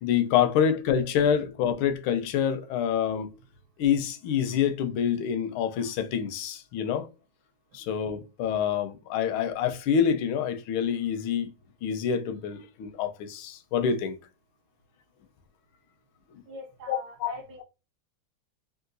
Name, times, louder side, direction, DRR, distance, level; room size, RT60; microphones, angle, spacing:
voice 1, 0.0-3.3 3.8-7.1 7.7-11.5 11.8-14.2 16.4-16.5 16.9-17.3, left 8 dB, 80° left, 1.4 m, -27 dB
voice 2, 16.5-17.6, right 1 dB, 65° right, 1.1 m, -43 dB
3.8 x 2.4 x 2.5 m
omnidirectional pair, 2.2 m